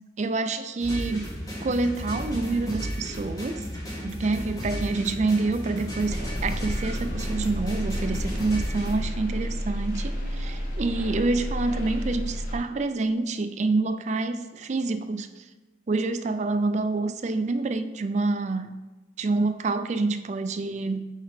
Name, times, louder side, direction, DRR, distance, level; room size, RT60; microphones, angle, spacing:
voice 1, 0.2-1.3 1.6-3.6 4.0-15.4 15.9-18.7 19.2-21.0, right 3 dB, 40° right, 9 dB, 0.4 m, -27 dB
sound 1, 0.8-9.0, equal, 20° left, 1.5 m, -34 dB
sound 2, 6.0-12.6, equal, 45° left, 1.3 m, -31 dB
6.6 x 3.7 x 4.8 m, 1.2 s
head